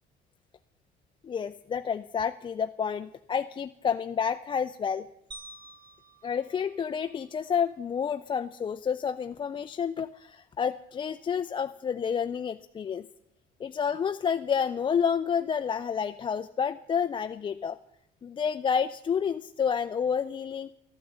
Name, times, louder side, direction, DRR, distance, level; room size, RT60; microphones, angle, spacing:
voice 1, 1.2-5.1 6.2-13.1 13.6-17.8 18.2-20.7, left 7 dB, 30° left, 10 dB, 0.4 m, -29 dB
sound 1, 5.3-7.7, right 2 dB, 25° right, 1.8 m, -50 dB
13.5 x 9.2 x 7.9 m, 0.82 s
cardioid pair, 110°, 17 cm